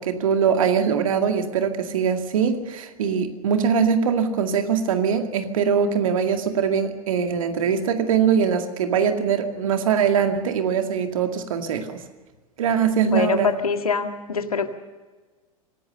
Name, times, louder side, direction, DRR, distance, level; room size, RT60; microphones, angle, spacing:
voice 1, 0.0-12.0 12.6-13.5, right 7 dB, 65° right, 6 dB, 2.2 m, -22 dB
voice 2, 13.0-14.7, left 5 dB, 80° left, 7 dB, 1.9 m, -24 dB
25.0 x 17.0 x 6.6 m, 1.3 s
figure-of-eight pair, 85°, 19 cm